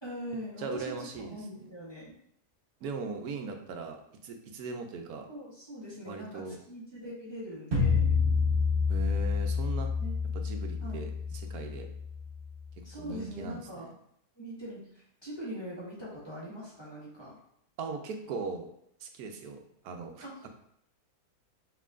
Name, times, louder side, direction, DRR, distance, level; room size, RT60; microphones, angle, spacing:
voice 1, 0.0-2.1 5.3-8.0 10.0-10.2 10.8-11.1 12.8-13.9 14.4-17.4 20.2-20.5, equal, 20° left, -7 dB, 1.3 m, -42 dB
voice 2, 0.6-1.4 2.8-4.0 4.2-5.3 6.1-6.6 8.9-9.9 10.3-11.9 12.8-13.9 17.8-18.7 19.0-20.5, right 4 dB, 80° right, 5 dB, 1.1 m, -39 dB
sound 1, 7.7-12.7, left 5 dB, 50° right, 1.2 m, -29 dB
5.4 x 3.0 x 2.5 m, 0.69 s
omnidirectional pair, 1.6 m